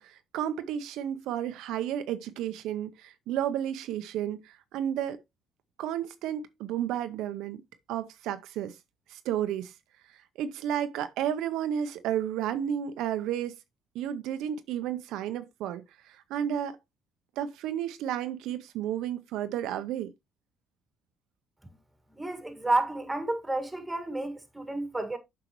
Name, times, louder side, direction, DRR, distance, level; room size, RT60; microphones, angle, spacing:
voice 1, 0.0-5.2 5.8-7.6 7.9-8.8 9.1-9.7 10.1-13.6 13.9-16.8 17.4-20.1, right 10 dB, 80° right, 0.6 m, -32 dB
voice 2, 22.2-25.2, right 2 dB, 10° right, 1.8 m, -30 dB
7.8 x 5.6 x 3.0 m
cardioid pair, 90°, 0 cm